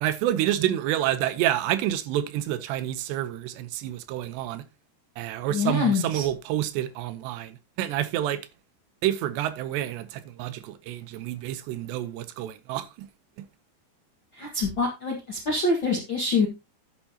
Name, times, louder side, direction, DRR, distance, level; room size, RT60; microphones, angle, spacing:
voice 1, 0.0-4.7 5.2-8.4 9.0-13.1, right 12 dB, 85° right, 3.0 m, -28 dB
voice 2, 5.5-6.3 14.3-16.5, left 3 dB, 55° left, 1.3 m, -25 dB
10.5 x 10.0 x 2.9 m
omnidirectional pair, 5.0 m